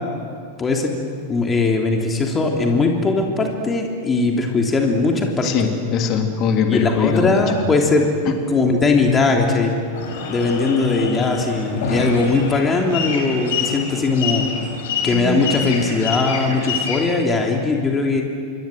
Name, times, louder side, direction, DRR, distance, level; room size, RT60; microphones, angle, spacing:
voice 1, 0.6-0.9 1.3-5.5 6.7-8.1 8.5-9.7 10.3-14.5 15.0-18.2, left 3 dB, 20° left, 1 dB, 3.2 m, -19 dB
voice 2, 5.4-7.6 8.2-8.3, left 7 dB, 35° left, 4 dB, 3.3 m, -21 dB
sound 1, 9.9-17.0, left 5 dB, 55° left, 5.9 m, -26 dB
28.0 x 23.5 x 7.9 m, 2.3 s
figure-of-eight pair, 90°, 0 cm